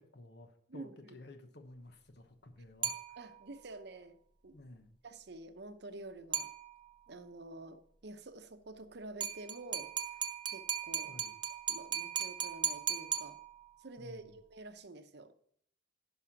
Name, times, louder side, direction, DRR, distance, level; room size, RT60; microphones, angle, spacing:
voice 1, 0.0-3.2 4.5-4.9 11.1-11.4 14.0-14.4, left 2 dB, 60° left, 6 dB, 1.1 m, -54 dB
voice 2, 0.7-1.2 3.2-4.2 4.4-4.6 5.0-6.5 7.1-9.9 10.5-11.2 11.7-13.4 13.8-15.3, right 2 dB, 60° right, 9 dB, 0.8 m, -49 dB
sound 1, 2.8-3.6 6.3-7.1 9.2-13.9, right 8 dB, 25° right, 0.7 m, -38 dB
11.0 x 5.7 x 5.8 m, 0.65 s
head